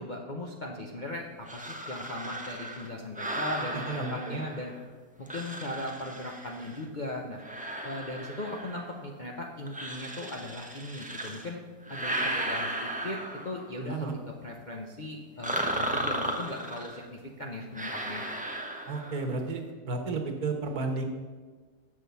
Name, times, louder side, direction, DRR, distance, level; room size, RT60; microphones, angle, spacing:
voice 1, 0.0-4.7 5.2-7.4 7.8-11.6 11.9-18.3, left 1 dB, 45° left, -1 dB, 0.6 m, -38 dB
sound 1, 1.5-4.8 5.3-6.8 7.4-9.0 9.7-11.5 11.8-13.8 15.4-17.0 17.7-19.3, right 1 dB, 10° right, 0.4 m, -35 dB
voice 2, 3.9-4.4 13.8-14.1 18.9-21.0, right 3 dB, 65° right, 4 dB, 1.5 m, -32 dB
7.7 x 6.2 x 6.9 m, 1.4 s
omnidirectional pair, 1.8 m